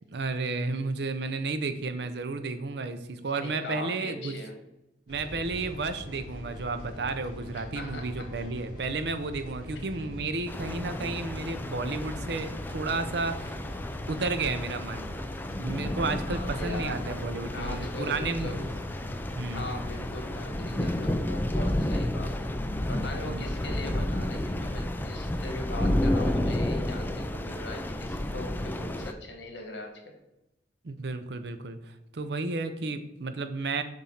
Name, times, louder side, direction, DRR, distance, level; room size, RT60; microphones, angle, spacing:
voice 1, 0.1-4.4 5.1-13.6 14.1-15.2 15.6-18.7 19.4-19.7 23.2-23.4 30.8-33.8, right 3 dB, 65° right, 10 dB, 0.6 m, -32 dB
voice 2, 3.4-4.5 7.5-8.4 9.7-10.1 16.3-17.2 17.5-18.6 19.5-22.6 22.9-30.1, left 2 dB, 80° left, 3 dB, 1.4 m, -40 dB
sound 1, 5.1-21.2, equal, 55° left, 1.9 m, -42 dB
sound 2, 10.5-29.1, left 1 dB, 10° left, 0.3 m, -31 dB
7.1 x 2.6 x 5.7 m, 0.93 s
head